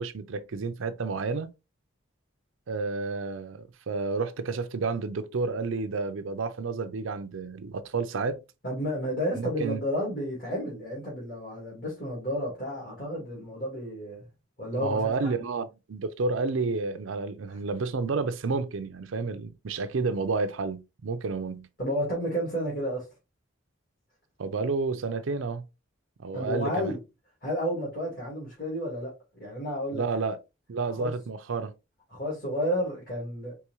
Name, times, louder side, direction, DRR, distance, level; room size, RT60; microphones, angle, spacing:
voice 1, 0.0-1.5 2.7-8.4 9.3-9.8 14.7-21.7 24.4-25.6 26.2-26.9 29.9-30.4 30.7-31.7, right 4 dB, 75° right, 0.5 m, -30 dB
voice 2, 8.6-14.3 14.6-15.3 21.8-23.1 26.3-27.0 27.4-29.1 29.4-30.0 30.9-31.1 32.1-33.6, equal, 45° left, 2.3 m, -31 dB
4.7 x 3.1 x 3.0 m
head